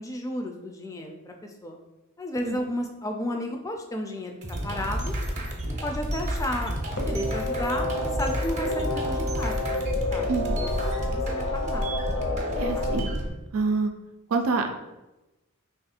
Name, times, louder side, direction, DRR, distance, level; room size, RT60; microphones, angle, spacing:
voice 1, 0.0-1.8 2.2-4.4 4.6-5.2 5.8-6.7 7.1-7.9 8.2-10.3 10.6-11.9 12.4-12.8, left 1 dB, 15° left, 3 dB, 0.3 m, -33 dB
voice 2, 2.4-2.8 10.3-10.6 12.6-13.2 13.5-13.9 14.3-14.7, right 4 dB, 80° right, 5 dB, 0.4 m, -27 dB
sound 1, 4.4-13.3, equal, 35° right, 0.6 m, -30 dB
sound 2, 7.0-13.0, left 2 dB, 70° left, 0.7 m, -30 dB
3.0 x 2.4 x 4.2 m, 1.0 s
head